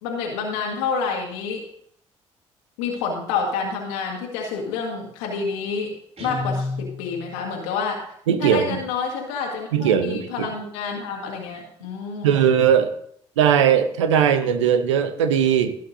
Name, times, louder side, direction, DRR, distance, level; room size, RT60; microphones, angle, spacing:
voice 1, 0.0-1.6 2.8-5.9 6.2-8.0 8.4-12.4, left 5 dB, 80° left, -1 dB, 1.8 m, -28 dB
Guitar, 6.2-7.4, left 2 dB, 45° right, 3.2 m, -30 dB
voice 2, 8.3-8.8 9.7-10.5 12.2-12.9 13.4-15.7, right 8 dB, 85° right, 9 dB, 0.8 m, -19 dB
16.5 x 7.5 x 2.7 m, 0.68 s
hypercardioid pair, 45°, 15 cm